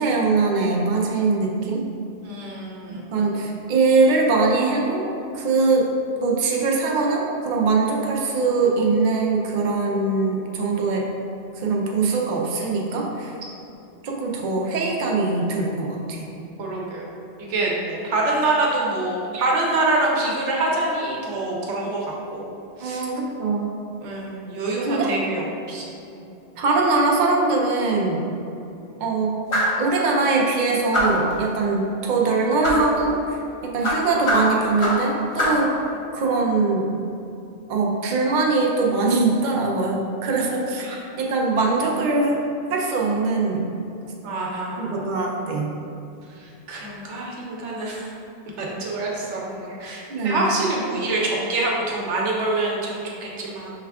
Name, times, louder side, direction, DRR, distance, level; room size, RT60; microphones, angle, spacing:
voice 1, 0.0-1.8 3.1-5.1 5.3-5.9 6.2-11.1 11.6-13.3 14.0-16.3 22.8-23.7 24.8-25.1 26.6-28.2 29.0-29.3 29.8-35.7 36.1-36.9 37.7-40.9 41.2-42.4 42.7-43.7 44.8-45.7 50.1-50.4, right 3 dB, 55° right, -1 dB, 0.6 m, -22 dB
voice 2, 2.2-3.3 16.6-17.1 17.4-22.5 22.8-23.0 24.0-26.2 40.8-41.0 44.2-45.0 46.3-48.1 48.6-53.7, right 2 dB, 90° right, -3 dB, 1.1 m, -26 dB
sound 1, 29.5-29.8 30.9-31.3 32.6-32.9 33.8-35.1 35.4-35.7, left 1 dB, 35° left, 0.6 m, -22 dB
5.7 x 2.3 x 3.4 m, 2.8 s
omnidirectional pair, 1.2 m